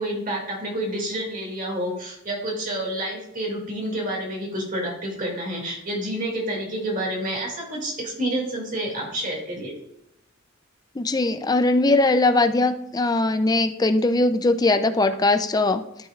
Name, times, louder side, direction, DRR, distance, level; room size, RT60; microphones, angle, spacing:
voice 1, 0.0-9.7, right 1 dB, 40° right, -1 dB, 2.4 m, -29 dB
voice 2, 11.0-15.8, left 2 dB, 20° left, 9 dB, 0.4 m, -20 dB
12.5 x 6.2 x 2.4 m, 0.80 s
head